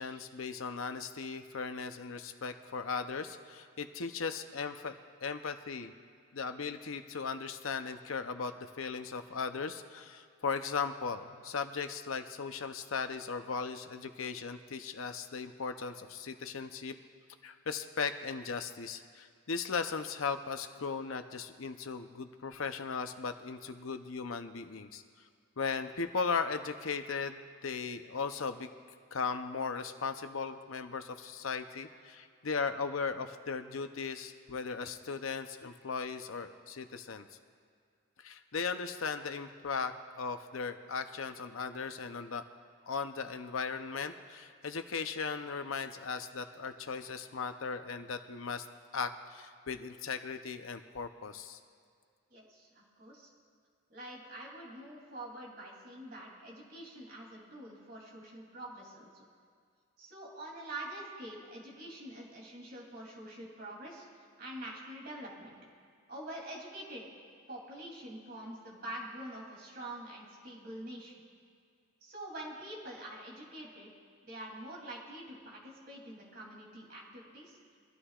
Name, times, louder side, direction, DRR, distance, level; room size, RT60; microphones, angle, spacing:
voice 1, 0.0-4.9 5.2-5.9 6.3-16.9 17.4-25.0 25.6-28.7 29.1-37.2 38.2-42.4 42.9-48.7 48.9-51.6, left 5 dB, 85° left, 8 dB, 0.8 m, -37 dB
voice 2, 52.3-53.3 53.9-59.3 60.0-65.5 66.1-67.0 67.5-71.2 72.0-73.9 74.2-77.6, right 1 dB, 50° right, -3 dB, 3.2 m, -46 dB
24.5 x 13.0 x 2.5 m, 2.1 s
head